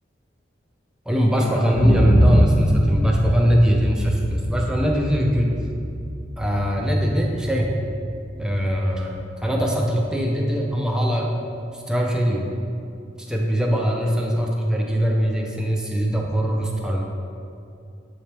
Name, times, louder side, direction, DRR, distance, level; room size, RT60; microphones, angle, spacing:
voice 1, 1.1-5.5 6.4-7.7 8.4-9.2 9.4-11.3 11.9-12.5 13.2-17.0, equal, 5° right, -1 dB, 0.5 m, -21 dB
sound 1, 1.7-9.6 10.0-10.1, equal, 15° left, 1.0 m, -24 dB
7.7 x 4.3 x 3.4 m, 2.6 s
head